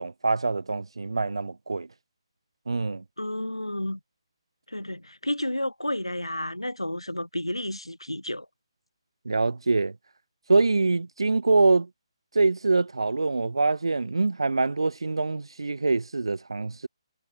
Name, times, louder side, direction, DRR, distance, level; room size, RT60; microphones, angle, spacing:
voice 1, 0.0-1.9 2.7-3.0 9.2-9.9 10.5-11.9 12.3-16.9, right 3 dB, 65° right, 1.0 m, -24 dB
voice 2, 3.2-4.0 4.7-8.5, left 1 dB, 85° left, 2.4 m, -31 dB
figure-of-eight pair, 145°, 3 cm